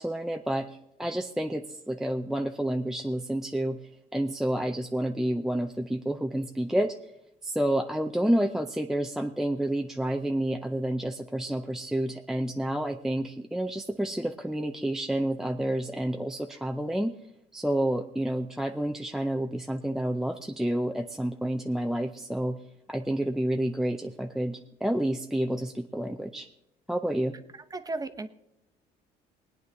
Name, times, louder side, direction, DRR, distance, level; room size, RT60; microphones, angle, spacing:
voice 1, 0.0-3.8 4.1-7.0 7.4-17.2 17.5-22.6 22.9-26.5 26.9-27.3, right 1 dB, 5° right, 4 dB, 0.5 m, -29 dB
voice 2, 27.5-28.3, right 2 dB, 20° right, 8 dB, 1.0 m, -35 dB
20.5 x 9.4 x 3.5 m, 0.85 s
cardioid pair, 110°, 17 cm